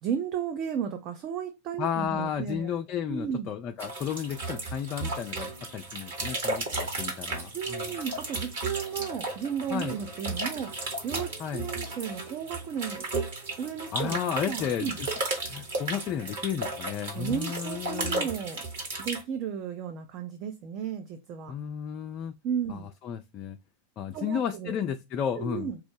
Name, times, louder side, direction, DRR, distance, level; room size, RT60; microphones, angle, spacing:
voice 1, 0.0-2.7 3.1-3.5 7.5-13.0 13.6-14.2 14.5-15.0 17.1-18.6 19.0-21.5 22.4-22.9 24.1-24.8 25.4-25.8, right 8 dB, 40° right, 0.5 m, -34 dB
voice 2, 1.8-7.9 9.7-10.0 11.4-11.7 13.9-15.1 15.5-18.3 21.5-22.3 22.7-23.6 24.0-25.7, left 8 dB, 35° left, 0.3 m, -33 dB
sound 1, 3.8-19.2, right 2 dB, 60° right, 1.4 m, -34 dB
4.6 x 2.0 x 3.3 m
figure-of-eight pair, 90°, 0 cm